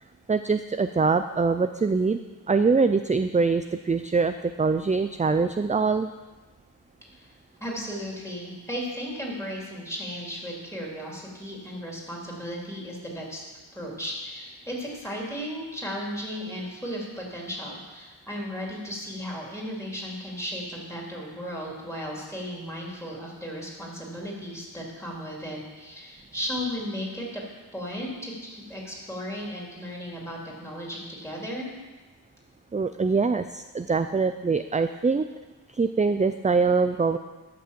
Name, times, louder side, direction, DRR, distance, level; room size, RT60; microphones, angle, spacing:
voice 1, 0.3-2.2 2.5-4.3 4.6-6.1 32.7-35.2 35.8-37.2, right 4 dB, 20° right, 9 dB, 0.3 m, -23 dB
voice 2, 7.6-13.4 13.7-27.4 27.7-31.7, equal, 5° left, -3 dB, 3.2 m, -35 dB
12.0 x 6.0 x 7.5 m, 1.2 s
wide cardioid pair, 80°, 43 cm